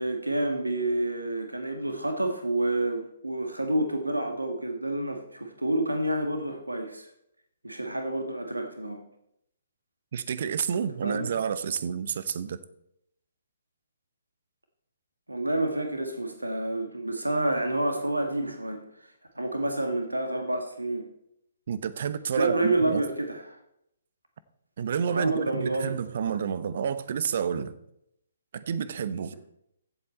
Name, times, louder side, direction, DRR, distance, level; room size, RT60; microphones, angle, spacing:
voice 1, 0.0-7.1 7.6-9.0 11.0-11.3 15.3-18.8 19.3-21.1 22.3-23.6 25.1-26.0, right 1 dB, 85° right, 1.7 m, -29 dB
voice 2, 10.1-12.6 21.7-23.0 24.8-27.8 28.5-29.3, right 7 dB, 50° right, 0.9 m, -29 dB
15.5 x 7.9 x 4.3 m
figure-of-eight pair, 130°, 0 cm